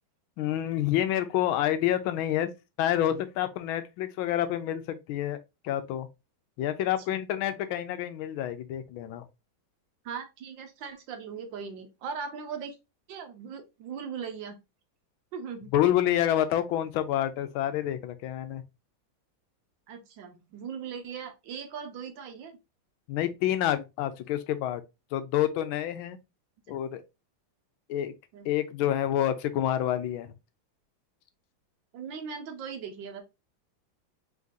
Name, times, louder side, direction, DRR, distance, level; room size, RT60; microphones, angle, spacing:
voice 1, 0.4-2.5 2.8-5.4 5.6-6.1 6.6-9.2 15.7-18.6 23.1-24.8 25.1-26.2 26.7-27.0 27.9-28.1 28.4-30.3, left 12 dB, 80° left, 1.4 m, -28 dB
voice 2, 10.0-12.8 13.1-14.6 15.3-15.7 19.9-22.6 28.3-28.5 31.9-33.2, right 6 dB, 70° right, 1.4 m, -39 dB
3.8 x 3.7 x 2.6 m
omnidirectional pair, 2.2 m